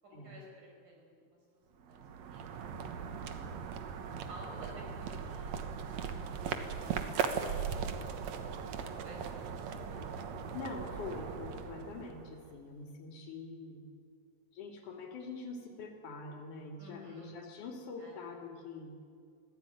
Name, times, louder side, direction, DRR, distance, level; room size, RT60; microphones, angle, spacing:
voice 1, 0.0-1.4 1.7-2.0 2.3-2.5 4.1-5.5 8.6-10.1 16.8-17.3 18.0-18.1, equal, 85° right, -1 dB, 7.8 m, -53 dB
sound 1, 1.8-12.5, right 7 dB, 65° right, 2.4 m, -39 dB
voice 2, 10.5-13.9 14.5-18.9, left 4 dB, 75° left, 3 dB, 4.0 m, -44 dB
23.5 x 16.0 x 9.4 m, 2.3 s
omnidirectional pair, 3.6 m